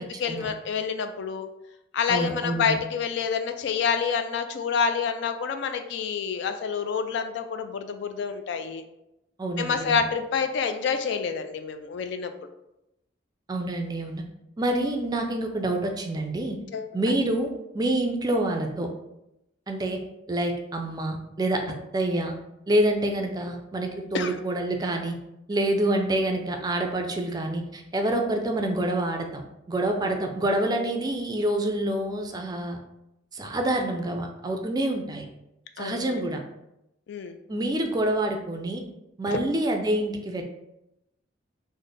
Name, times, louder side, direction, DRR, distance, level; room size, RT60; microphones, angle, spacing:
voice 1, 0.0-1.5 1.9-8.8 9.6-12.3 16.7-16.9 24.1-24.3 35.8-36.2 37.1-37.4 39.3-39.4, left 6 dB, 65° left, 8 dB, 0.3 m, -28 dB
voice 2, 2.1-2.8 9.4-10.0 13.5-14.2 14.6-16.6 16.9-17.5 17.7-18.9 19.7-20.0 20.3-21.6 21.9-22.3 22.7-25.2 25.5-29.4 29.7-32.8 33.3-35.2 35.8-36.4 37.5-38.8 39.2-40.4, right 1 dB, 20° right, 3 dB, 0.4 m, -27 dB
3.3 x 2.1 x 3.9 m, 0.88 s
head